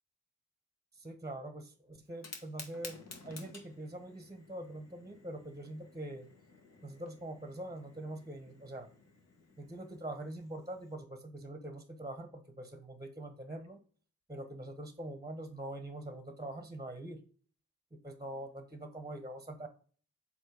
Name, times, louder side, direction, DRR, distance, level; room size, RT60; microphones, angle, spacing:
voice 1, 0.9-6.3 6.8-8.9 9.6-13.8 14.3-17.2 17.9-19.7, right 1 dB, 10° right, 7 dB, 1.0 m, -44 dB
Fire, 2.1-10.9, left 4 dB, 60° left, 1.5 m, -54 dB
7.4 x 2.8 x 4.7 m, 0.42 s
cardioid pair, 80°, 30 cm